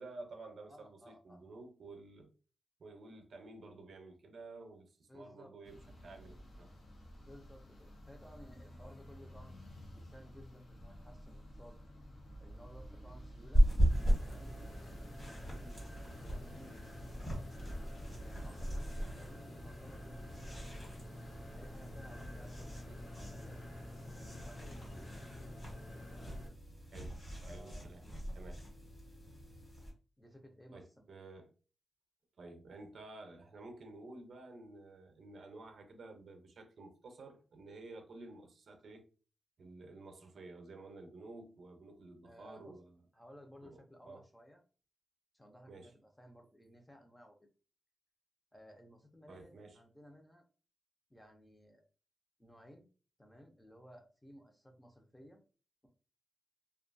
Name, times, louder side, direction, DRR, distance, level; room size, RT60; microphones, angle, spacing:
voice 1, 0.0-2.3 2.8-6.7 13.0-13.2 24.9-25.1 26.9-27.2 27.5-28.0 28.3-28.7 30.7-31.5 32.4-39.0 39.6-43.0 43.6-44.2 45.7-45.9 49.3-49.8, right 2 dB, 60° right, 0.6 m, -52 dB
voice 2, 0.7-1.4 5.1-5.5 7.2-9.6 9.9-11.8 12.4-13.7 14.2-15.8 16.2-16.8 17.1-17.5 18.2-21.0 21.5-23.6 24.2-25.3 26.1-26.4 27.4-28.2 30.2-31.1 42.2-42.8 43.1-44.6 45.3-47.5 48.5-50.4 51.1-51.8 52.4-52.9 53.2-55.4, equal, 5° left, 0.5 m, -58 dB
sound 1, 5.6-25.2, equal, 75° left, 0.7 m, -53 dB
sound 2, 13.5-29.9, equal, 35° left, 1.3 m, -37 dB
sound 3, 13.9-26.5, left 1 dB, 90° left, 1.3 m, -50 dB
2.6 x 2.3 x 2.5 m
wide cardioid pair, 150°, 0 cm